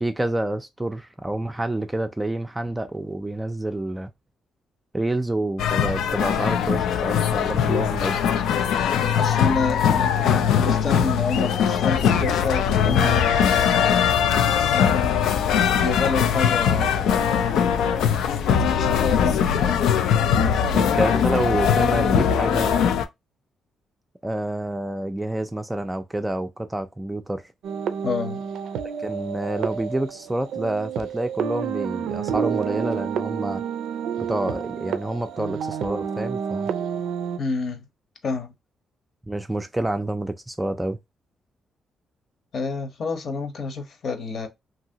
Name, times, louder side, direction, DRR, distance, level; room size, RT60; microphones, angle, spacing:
voice 1, 0.0-4.1 4.9-8.2 15.8-16.0 20.7-22.9 24.2-27.5 29.0-33.6 34.2-36.7 39.3-41.0, right 1 dB, 10° right, 0.4 m, -28 dB
sound 1, 5.6-23.0, left 8 dB, 90° left, 0.4 m, -21 dB
voice 2, 9.2-13.3 14.7-17.5 18.7-20.0 20.3-20.6 28.0-28.4 37.4-37.8 38.2-38.5 42.5-44.5, left 4 dB, 55° left, 0.9 m, -28 dB
sound 2, 27.6-37.4, right 7 dB, 85° right, 0.4 m, -29 dB
2.9 x 2.7 x 2.7 m
cardioid pair, 115°, 0 cm